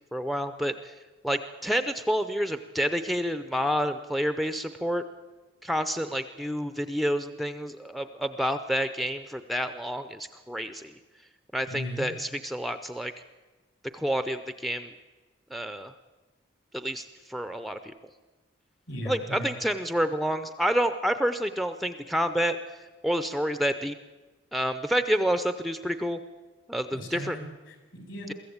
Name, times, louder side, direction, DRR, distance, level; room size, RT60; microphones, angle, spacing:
voice 1, 0.1-0.9 1.2-5.0 5.6-10.9 11.5-13.1 13.9-14.9 15.5-15.9 16.7-17.9 19.1-22.6 23.0-24.0 24.5-26.2 26.7-27.4, equal, ahead, 10 dB, 0.6 m, -29 dB
voice 2, 11.7-12.1 18.9-19.5 26.9-28.3, equal, 65° left, 4 dB, 5.4 m, -37 dB
23.0 x 15.0 x 8.6 m, 1.2 s
head